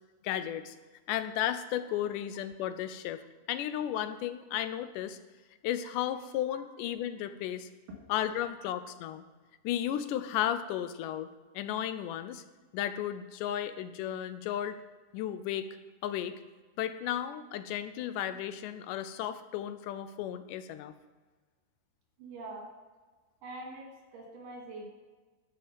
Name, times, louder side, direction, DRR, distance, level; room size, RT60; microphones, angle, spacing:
voice 1, 0.2-0.8 1.1-3.2 3.5-5.2 5.6-7.7 8.1-9.2 9.6-11.3 11.5-12.4 12.7-14.8 15.1-15.8 16.0-16.4 16.8-20.9, left 11 dB, 85° left, 11 dB, 2.1 m, -34 dB
voice 2, 22.2-22.7 23.4-24.9, right 2 dB, 85° right, 0 dB, 3.6 m, -44 dB
12.5 x 5.5 x 5.1 m, 1.3 s
omnidirectional pair, 3.7 m